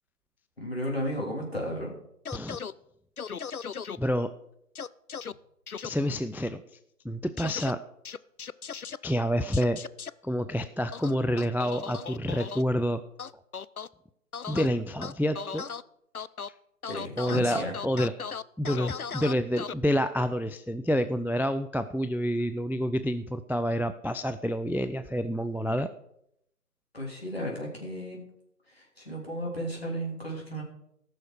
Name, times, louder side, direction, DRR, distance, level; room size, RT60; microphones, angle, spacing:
voice 1, 0.6-1.9 16.8-17.8 26.9-28.2 28.7-30.6, equal, 40° left, -2 dB, 3.3 m, -34 dB
sound 1, 2.3-2.7 3.2-4.0 4.8-5.3 5.7-5.9 7.4-7.7 8.1-9.0 9.5-10.1 10.9-12.6 13.2-13.9 14.3-14.7 15.0-15.8 16.1-16.5 16.8-19.7, left 6 dB, 65° left, 0.5 m, -37 dB
voice 2, 4.0-4.3 5.8-6.6 7.0-7.8 9.0-9.8 10.2-13.0 14.5-15.7 17.2-18.1 18.6-25.9, equal, 5° right, 11 dB, 0.3 m, -28 dB
18.5 x 6.4 x 4.8 m, 0.76 s
figure-of-eight pair, 170°, 47 cm